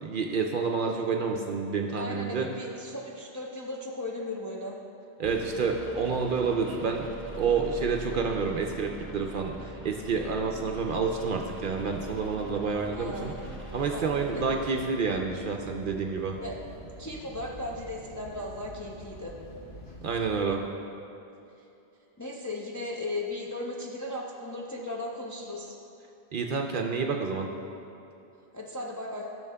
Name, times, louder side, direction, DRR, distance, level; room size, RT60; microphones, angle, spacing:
voice 1, 0.0-2.5 5.2-7.1 7.3-13.3 13.7-16.4 20.0-20.6 26.3-27.5, right 5 dB, 60° right, 2 dB, 0.6 m, -29 dB
voice 2, 2.0-4.8 12.9-13.5 13.9-14.1 14.3-14.4 16.4-16.5 17.0-19.3 22.2-25.7 28.5-29.3, left 1 dB, 25° left, -3 dB, 0.4 m, -36 dB
sound 1, 5.2-14.6, right 1 dB, 10° right, 0.9 m, -42 dB
sound 2, 13.1-20.5, right 1 dB, 65° left, 2.3 m, -46 dB
14.0 x 6.2 x 2.2 m, 2.8 s
omnidirectional pair, 1.1 m